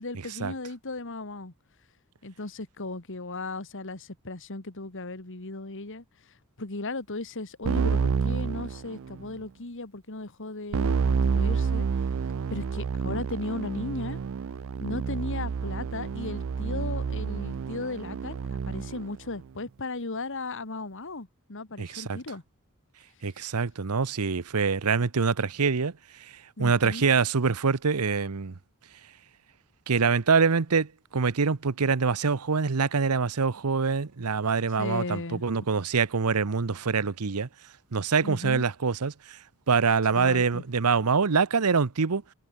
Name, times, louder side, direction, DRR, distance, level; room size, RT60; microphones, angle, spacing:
voice 1, 0.0-1.5 2.2-6.0 6.6-11.9 12.5-14.2 14.8-22.4 26.6-27.1 34.8-35.4 38.2-38.6 40.1-40.6, left 2 dB, 60° left, 2.1 m, -36 dB
Keyboard (musical), 7.7-9.3 10.7-19.1, right 6 dB, 65° right, 0.4 m, -29 dB
voice 2, 21.8-22.2 23.2-25.9 26.6-28.5 29.9-37.5 37.9-39.4 39.7-42.2, right 5 dB, 85° right, 0.8 m, -25 dB
head